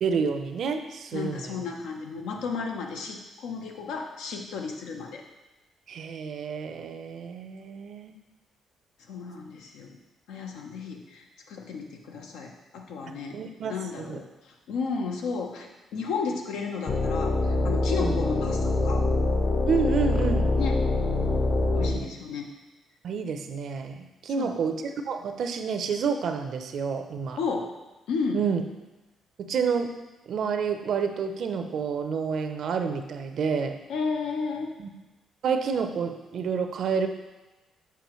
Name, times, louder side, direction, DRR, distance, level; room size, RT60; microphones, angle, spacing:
voice 1, 0.0-1.5 5.9-8.2 13.3-14.2 18.0-18.2 19.7-20.5 23.0-27.4 28.3-28.6 29.4-29.9 30.3-33.8 34.8-34.9 35.4-37.1, right 6 dB, 65° right, 7 dB, 0.5 m, -29 dB
voice 2, 1.1-5.2 9.1-10.0 10.3-13.4 13.7-19.0 20.5-20.8 21.7-22.5 24.3-24.6 27.4-27.7 28.1-28.4 33.9-34.7, left 5 dB, 85° left, 2 dB, 0.8 m, -33 dB
sound 1, 16.9-22.0, left 2 dB, 45° left, 0.8 m, -24 dB
6.9 x 4.8 x 3.0 m, 1.1 s
cardioid pair, 90°, 0 cm